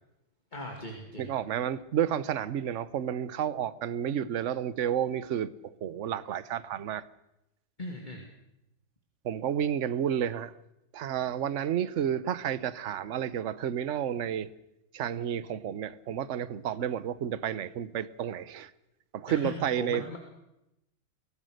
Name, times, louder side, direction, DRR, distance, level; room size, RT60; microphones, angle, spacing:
voice 1, 0.5-1.3 7.8-8.3 19.3-20.2, left 1 dB, 20° left, 2.7 m, -39 dB
voice 2, 1.2-7.0 9.2-10.5 10.9-14.5 14.9-18.7 19.1-20.0, right 9 dB, 55° right, 0.9 m, -31 dB
24.0 x 17.5 x 6.6 m
omnidirectional pair, 2.2 m